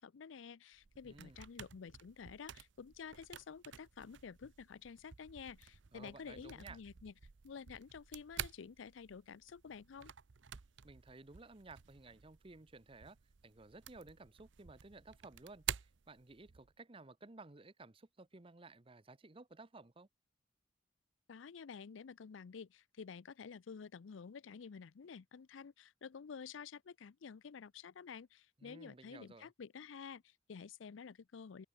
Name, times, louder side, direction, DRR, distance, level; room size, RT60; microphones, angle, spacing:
voice 1, 0.0-7.1 7.4-10.1 21.3-31.7, left 6 dB, 85° left, 0.5 m, -51 dB
sound 1, 0.7-16.7, right 9 dB, 75° right, 0.7 m, -50 dB
voice 2, 1.0-1.4 5.9-6.8 10.8-13.2 13.4-20.1 28.6-29.5, right 3 dB, 30° right, 0.9 m, -56 dB
open air
head